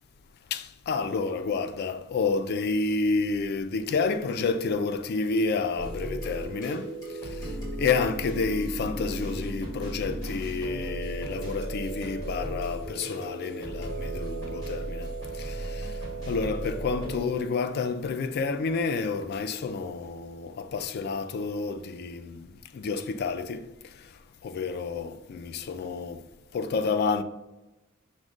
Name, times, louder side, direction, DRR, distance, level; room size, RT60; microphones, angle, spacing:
voice 1, 0.5-6.9 7.4-7.5 7.8-15.9 16.3-23.7 24.4-26.2 26.5-27.2, left 4 dB, 50° left, 0.3 m, -29 dB
sound 1, 5.7-17.2, right 1 dB, 20° left, 1.5 m, -35 dB
6.0 x 2.1 x 3.8 m
head